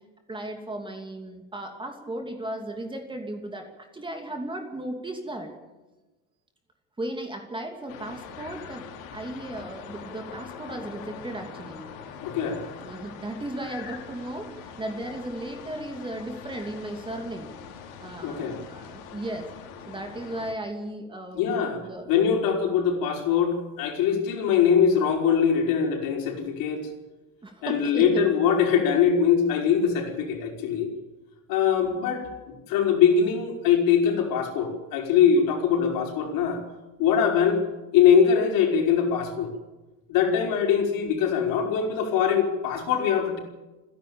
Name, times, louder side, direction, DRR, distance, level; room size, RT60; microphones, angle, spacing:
voice 1, 0.3-5.5 7.0-8.9 9.1-11.9 12.8-17.5 18.0-19.5 19.9-22.1 27.4-28.2, right 1 dB, 10° right, 4 dB, 2.8 m, -36 dB
sound 1, 7.9-20.5, left 7 dB, 80° left, 3.9 m, -43 dB
voice 2, 12.2-12.7 18.2-18.6 21.3-21.8 22.1-26.8 27.6-30.9 31.5-36.6 37.0-37.6 37.9-39.5 40.1-43.4, left 7 dB, 55° left, 2 dB, 5.3 m, -22 dB
28.5 x 11.0 x 8.7 m, 1.1 s
supercardioid pair, 135°, 41 cm